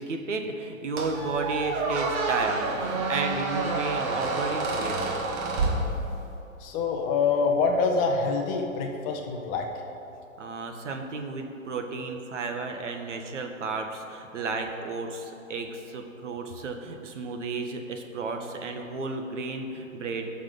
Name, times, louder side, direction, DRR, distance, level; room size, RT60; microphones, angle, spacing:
voice 1, 0.0-5.2 10.4-20.3, right 3 dB, 60° right, 4 dB, 1.4 m, -33 dB
Squeak, 1.0-6.5, right 3 dB, 25° right, 1.1 m, -29 dB
voice 2, 6.6-9.7, left 4 dB, 20° left, 2 dB, 0.9 m, -25 dB
18.5 x 6.6 x 3.9 m, 2.8 s
figure-of-eight pair, 125°, 40 cm